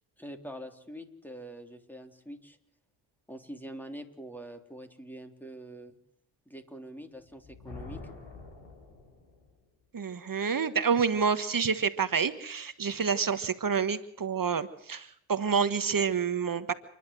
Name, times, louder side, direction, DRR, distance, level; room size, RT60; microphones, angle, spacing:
voice 1, 0.2-2.6 3.3-6.0 6.5-8.0, right 1 dB, 5° left, 5 dB, 3.6 m, -44 dB
Thunder, 7.2-9.6, left 3 dB, 60° left, 6.6 m, -46 dB
voice 2, 9.9-16.7, right 6 dB, 45° right, 11 dB, 1.5 m, -28 dB
29.5 x 11.5 x 7.8 m, 0.72 s
supercardioid pair, 55°, 48 cm